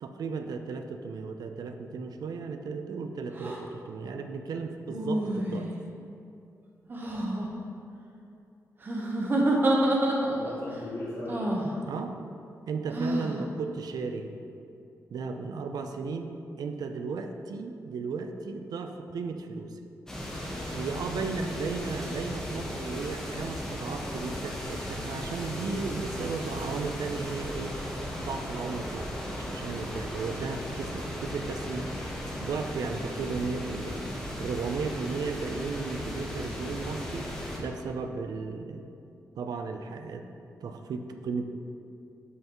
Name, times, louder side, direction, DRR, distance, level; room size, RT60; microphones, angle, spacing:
voice 1, 0.0-5.7 11.9-12.2 12.7-14.4 15.1-19.8 20.5-27.8 28.2-31.9 32.4-34.1 34.4-38.8 39.4-40.3 40.6-41.4, right 4 dB, 90° right, 6 dB, 0.5 m, -35 dB
sound 1, 3.3-3.6 4.9-5.8 6.9-7.5 8.8-10.6 11.3-11.7 12.9-13.4, right 1 dB, 35° right, 0.9 m, -28 dB
voice 2, 10.2-11.6, left 1 dB, 60° left, -12 dB, 2.0 m, -37 dB
sound 2, 20.1-37.6, left 1 dB, 10° left, 1.2 m, -36 dB
12.5 x 5.6 x 3.0 m, 2.6 s
wide cardioid pair, 165°, 6 cm